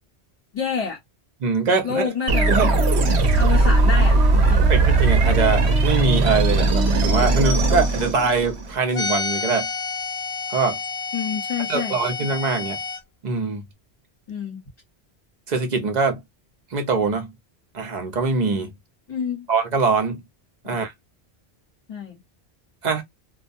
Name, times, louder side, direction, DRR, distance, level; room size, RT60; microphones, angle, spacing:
voice 1, 0.5-1.0 1.8-4.7 11.1-12.0 14.3-14.6 19.1-19.5 20.6-20.9 21.9-22.2, left 6 dB, 35° left, 1.0 m, -29 dB
voice 2, 1.4-2.0 2.5-2.7 4.7-9.7 10.5-10.8 11.7-12.8 13.2-13.6 15.5-16.2 16.7-17.3 17.7-18.7 19.5-20.2 20.6-20.9 22.8-23.0, right 4 dB, 45° right, 0.8 m, -23 dB
sound 1, 2.3-8.7, right 2 dB, 85° right, 0.9 m, -18 dB
sound 2, 8.9-13.0, left 4 dB, 55° left, 0.4 m, -29 dB
2.3 x 2.1 x 2.5 m
omnidirectional pair, 1.1 m